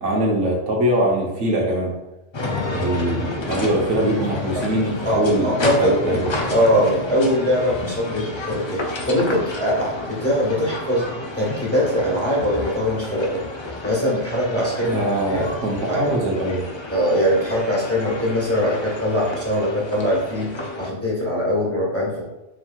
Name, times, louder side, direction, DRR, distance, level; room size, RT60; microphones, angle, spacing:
voice 1, 0.0-2.0 2.7-6.3 14.9-16.7, right 1 dB, 80° right, -2 dB, 1.3 m, -22 dB
sound 1, 2.3-20.9, left 2 dB, 45° left, 0.3 m, -30 dB
voice 2, 5.0-8.8 9.1-11.1 11.3-13.4 13.8-15.0 15.3-15.5 15.9-16.1 16.9-22.2, equal, 10° left, -7 dB, 1.3 m, -22 dB
4.7 x 4.4 x 2.3 m, 1.0 s
omnidirectional pair, 1.2 m